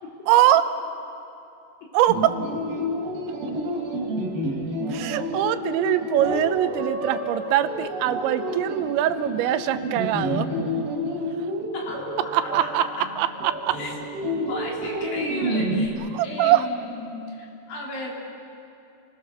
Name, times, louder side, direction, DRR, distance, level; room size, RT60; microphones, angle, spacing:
voice 1, 0.3-0.6 1.9-2.3 4.9-10.5 12.3-12.8 13.2-13.7 16.1-16.7, right 12 dB, 90° right, 11 dB, 3.2 m, -22 dB
sound 1, 2.1-15.9, equal, 60° right, 4.5 m, -29 dB
voice 2, 11.7-13.1 13.7-13.9 14.5-15.9 16.2-18.1, left 2 dB, 55° left, -3 dB, 5.1 m, -35 dB
29.5 x 21.0 x 6.7 m, 2.7 s
omnidirectional pair, 5.1 m